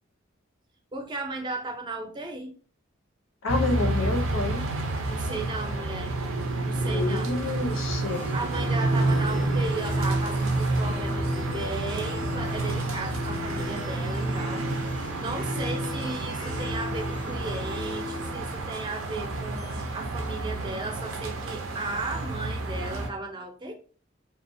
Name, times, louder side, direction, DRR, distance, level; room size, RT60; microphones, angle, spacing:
voice 1, 0.9-2.5 5.1-6.2 6.6-7.3 8.3-23.7, right 2 dB, 25° right, 0.4 m, -35 dB
voice 2, 3.4-4.6 6.9-8.2, left 2 dB, 85° left, 0.6 m, -29 dB
sound 1, 3.5-23.1, right 2 dB, 85° right, 0.5 m, -29 dB
sound 2, 8.1-19.8, left 5 dB, 35° left, 0.4 m, -39 dB
2.7 x 2.0 x 2.5 m
head